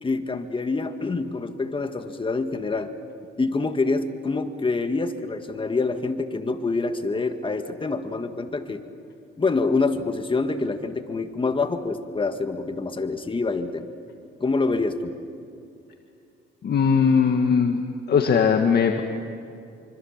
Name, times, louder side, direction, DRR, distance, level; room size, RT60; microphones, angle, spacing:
voice 1, 0.0-2.9 3.4-8.8 9.4-13.9 14.4-15.1, left 3 dB, 25° left, 7 dB, 1.8 m, -26 dB
voice 2, 16.6-17.8 18.1-19.0, left 6 dB, 55° left, 4 dB, 1.7 m, -19 dB
25.5 x 25.0 x 7.4 m, 2.5 s
cardioid pair, 90°, 20 cm